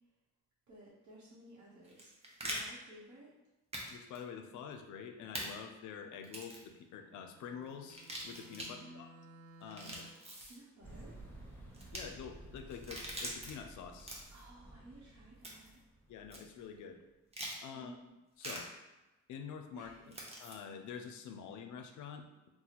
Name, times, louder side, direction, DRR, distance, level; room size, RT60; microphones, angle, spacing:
voice 1, 0.7-2.1 2.4-3.3 8.6-9.1 9.6-9.8 10.1-11.2 14.3-15.8 17.7-18.0 19.7-20.1, right 1 dB, 65° right, -7 dB, 0.8 m, -56 dB
sound 1, 1.8-2.6 3.7-4.2 5.3-5.5 6.2-6.7 7.9-8.7 9.6-10.6 11.7-12.0 12.7-13.5 14.0-14.4 15.4-15.8 16.3-16.4 17.3-17.6 18.4-18.6 20.1-20.5, right 1 dB, 20° right, 0.7 m, -43 dB
voice 2, 3.9-9.1 9.6-10.1 11.9-14.2 16.1-17.0 17.6-18.0 18.4-18.7 19.3-22.5, left 7 dB, 75° left, 6 dB, 0.5 m, -47 dB
Bowed string instrument, 7.0-10.4, right 1 dB, 50° right, 0.4 m, -58 dB
sound 2, 10.8-16.9 17.4-17.5, right 1 dB, 5° left, 0.9 m, -54 dB
2.8 x 2.1 x 4.0 m, 1.1 s
cardioid pair, 90°, 30 cm